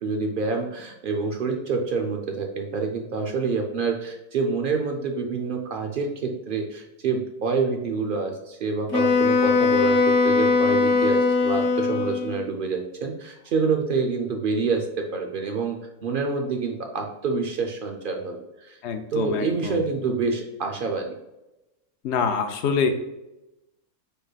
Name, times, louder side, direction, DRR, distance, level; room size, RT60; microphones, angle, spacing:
voice 1, 0.0-18.8 19.1-21.1, right 4 dB, 65° right, 3 dB, 0.5 m, -27 dB
Wind instrument woodwind instrument, 8.9-12.5, left 4 dB, 80° left, 1.2 m, -20 dB
voice 2, 18.8-19.8 22.0-22.9, left 6 dB, 60° left, 7 dB, 0.8 m, -25 dB
4.7 x 4.5 x 2.3 m, 0.95 s
omnidirectional pair, 1.5 m